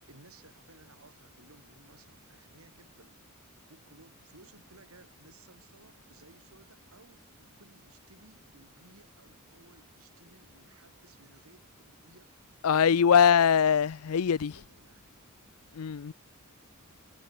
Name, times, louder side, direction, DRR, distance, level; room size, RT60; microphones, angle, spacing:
voice 1, 0.1-3.2 3.7-13.4 13.8-15.1, right 2 dB, 70° right, 4.1 m, -59 dB
voice 2, 12.6-14.5 15.7-16.1, left 7 dB, 75° left, 0.5 m, -22 dB
head